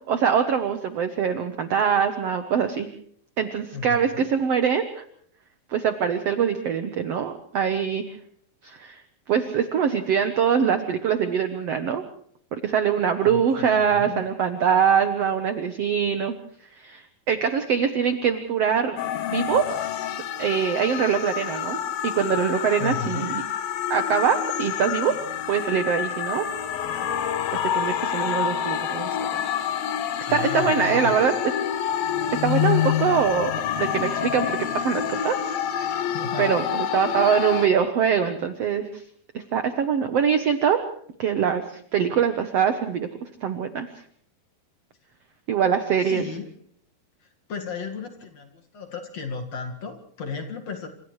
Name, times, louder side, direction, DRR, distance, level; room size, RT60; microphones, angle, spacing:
voice 1, 0.1-2.9 3.4-5.0 5.7-8.1 8.6-9.0 9.3-12.0 12.5-16.3 16.7-19.0 19.3-19.9 20.4-23.4 23.9-25.2 25.5-26.5 27.7-29.4 30.3-31.5 32.3-33.5 33.8-35.5 36.4-39.0 39.3-40.9 41.2-43.1 43.4-43.9 45.5-46.2, right 7 dB, 70° right, 8 dB, 1.5 m, -23 dB
voice 2, 3.7-4.3 13.2-14.2 22.8-23.3 30.3-31.2 36.1-36.6 46.0-46.5 47.2-50.9, left 5 dB, 50° left, 3 dB, 2.7 m, -34 dB
sound 1, 19.0-37.7, left 9 dB, 75° left, 2.9 m, -27 dB
29.5 x 27.5 x 3.2 m, 0.63 s
omnidirectional pair, 4.2 m